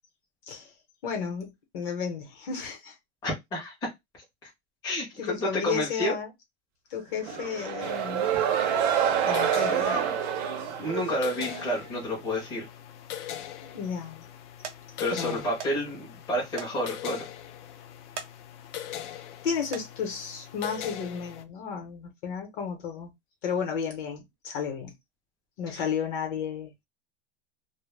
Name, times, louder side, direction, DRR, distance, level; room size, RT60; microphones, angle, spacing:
voice 1, 1.0-2.9 5.2-6.3 6.9-8.3 9.3-9.9 13.6-14.3 15.1-15.4 19.4-23.1 23.4-24.9 25.6-26.8, left 6 dB, 50° left, 0.8 m, -33 dB
voice 2, 3.2-3.9 4.4-4.5 4.8-6.1 9.7-10.1 10.8-12.7 15.0-17.2 25.7-25.8, equal, 10° left, 0.5 m, -30 dB
sound 1, 7.2-11.7, right 8 dB, 40° right, 0.4 m, -27 dB
sound 2, 7.8-21.4, left 11 dB, 85° left, 0.5 m, -42 dB
sound 3, 14.6-14.8 15.6-15.8 16.1-16.2 16.6-16.7 17.1-17.2 18.0-18.3 18.8-19.1 19.6-19.9 20.8-21.0 21.5-21.6, right 7 dB, 90° right, 0.7 m, -40 dB
2.1 x 2.0 x 3.1 m
supercardioid pair, 175°, 35 cm